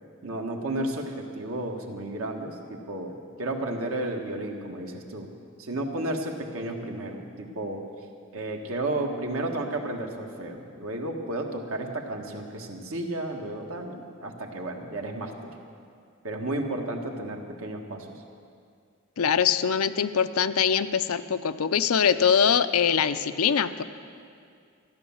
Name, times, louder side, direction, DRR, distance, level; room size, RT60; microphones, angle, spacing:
voice 1, 0.2-5.3 5.6-7.8 8.3-15.5 16.2-18.1, right 1 dB, 70° right, 2 dB, 1.5 m, -32 dB
voice 2, 19.2-23.8, left 7 dB, 80° left, 12 dB, 0.5 m, -23 dB
14.0 x 10.5 x 7.2 m, 2.3 s
head